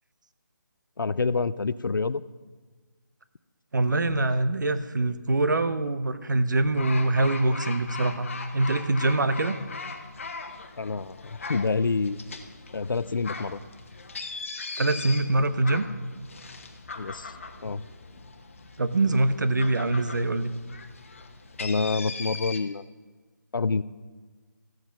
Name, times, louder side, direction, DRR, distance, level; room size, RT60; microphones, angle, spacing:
voice 1, 1.0-2.2 10.8-12.2 12.7-13.6 17.0-17.3 17.6-17.9 21.6-22.8 23.5-23.8, left 4 dB, 85° left, 17 dB, 0.5 m, -27 dB
voice 2, 3.7-9.6 14.8-15.8 18.8-20.5, right 2 dB, 65° right, 11 dB, 0.9 m, -24 dB
sound 1, 6.7-22.6, left 4 dB, 40° left, 1.1 m, -40 dB
14.5 x 7.8 x 5.8 m, 1.4 s
figure-of-eight pair, 170°, 11 cm